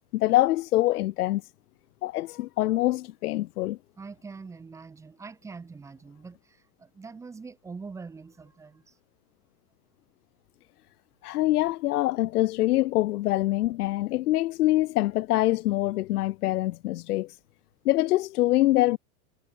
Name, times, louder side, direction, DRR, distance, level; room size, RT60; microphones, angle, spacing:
voice 1, 0.1-1.4 2.0-3.8 11.2-17.3 17.8-19.0, left 16 dB, 90° left, 0.7 m, -24 dB
voice 2, 4.0-8.9, right 4 dB, 5° right, 1.3 m, -44 dB
supercardioid pair, 165°, 45 cm